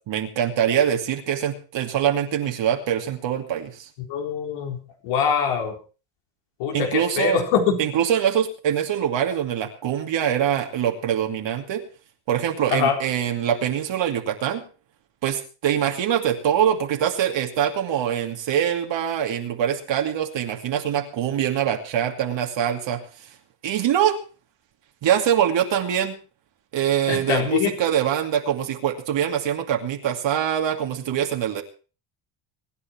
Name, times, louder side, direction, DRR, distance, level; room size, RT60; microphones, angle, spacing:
voice 1, 0.1-3.9 6.7-7.4 7.8-11.8 12.3-14.6 15.2-23.0 23.6-24.2 25.0-26.2 26.7-31.6, right 9 dB, 60° right, 3 dB, 2.6 m, -24 dB
voice 2, 4.1-5.7 6.6-7.8 12.7-13.0 27.1-27.8, left 7 dB, 85° left, 2 dB, 4.2 m, -23 dB
24.0 x 9.9 x 4.5 m, 0.36 s
cardioid pair, 110°, 50 cm